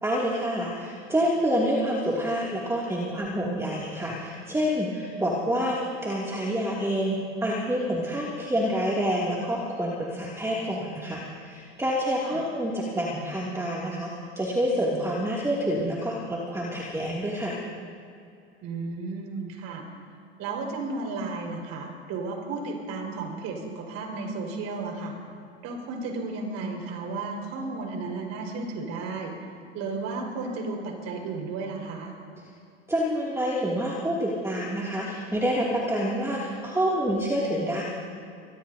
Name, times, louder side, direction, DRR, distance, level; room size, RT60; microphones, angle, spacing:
voice 1, 0.0-14.1 14.4-17.5 32.9-37.8, equal, 10° right, -5 dB, 2.6 m, -27 dB
voice 2, 18.6-19.8 20.4-25.1 25.6-29.3 29.7-32.1, right 3 dB, 50° right, 1 dB, 5.1 m, -33 dB
24.5 x 19.5 x 2.8 m, 2.6 s
hypercardioid pair, 90°, 33 cm